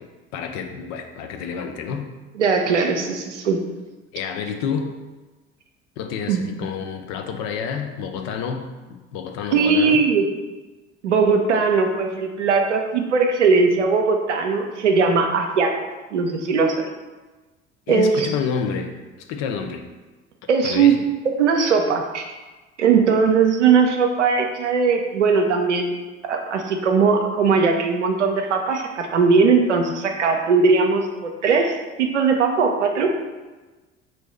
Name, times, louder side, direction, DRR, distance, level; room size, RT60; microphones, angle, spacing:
voice 1, 0.3-2.1 4.1-4.9 6.0-10.0 17.9-19.8 20.6-21.0, left 6 dB, 50° left, 5 dB, 0.5 m, -29 dB
voice 2, 2.4-3.6 6.3-6.5 9.5-10.3 11.0-15.8 16.1-16.8 17.9-18.3 20.5-22.3 22.8-26.0 26.3-33.1, right 5 dB, 80° right, 4 dB, 0.5 m, -19 dB
3.1 x 2.6 x 4.3 m, 1.2 s
figure-of-eight pair, 60°, 35 cm